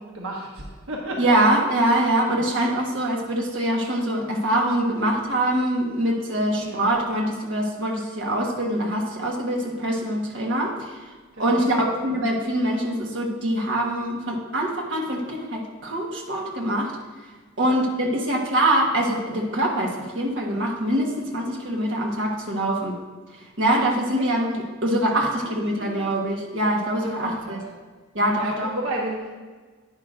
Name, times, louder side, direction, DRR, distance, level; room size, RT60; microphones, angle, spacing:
voice 1, 0.0-1.4 1.7-2.0 6.6-6.9 11.4-11.9 17.6-17.8 24.2-24.3 25.3-25.5 25.8-26.2 27.0-27.6 28.4-29.3, right 1 dB, 80° right, -2 dB, 1.2 m, -33 dB
voice 2, 1.2-11.0 11.4-16.9 17.6-23.0 23.6-27.6 28.1-28.7, right 1 dB, 60° right, -1 dB, 1.5 m, -24 dB
10.5 x 9.6 x 2.6 m, 1.4 s
head